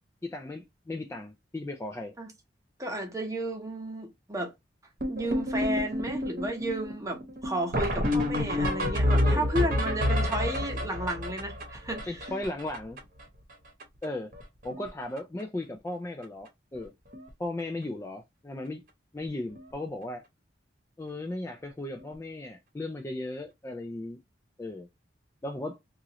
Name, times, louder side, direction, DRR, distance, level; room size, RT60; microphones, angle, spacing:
voice 1, 0.2-2.1 9.2-9.5 12.1-13.0 14.0-14.3 14.6-16.9 17.4-18.8 19.1-20.2 21.0-24.2 24.6-24.9 25.4-25.8, left 2 dB, 15° left, 0.3 m, -36 dB
voice 2, 2.8-4.5 5.1-12.2, right 1 dB, 20° right, 0.8 m, -33 dB
sound 1, 5.0-13.2 13.5-13.6 13.8-14.1 14.3-14.9 15.2-15.4 16.2-16.3 16.7-16.8 17.1-17.3 19.6-19.7 22.0-22.1, left 1 dB, 50° right, 0.9 m, -29 dB
2.9 x 2.4 x 2.9 m
head